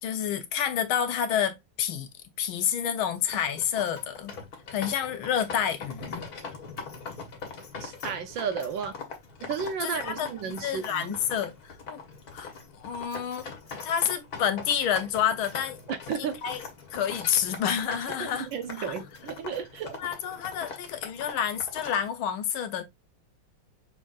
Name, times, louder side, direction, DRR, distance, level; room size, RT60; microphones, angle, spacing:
voice 1, 0.0-2.1 2.4-4.3 4.7-6.2 9.8-10.3 10.6-12.0 12.3-12.5 12.8-13.4 13.8-15.8 16.2-16.6 16.9-18.5 20.0-22.8, left 9 dB, 80° left, 1.6 m, -29 dB
sound 1, 3.2-22.1, left 4 dB, 50° left, 1.6 m, -42 dB
voice 2, 7.8-9.0 9.4-11.1 15.9-16.4 18.2-20.0, right 7 dB, 70° right, 1.4 m, -33 dB
6.3 x 3.4 x 2.4 m
omnidirectional pair, 2.3 m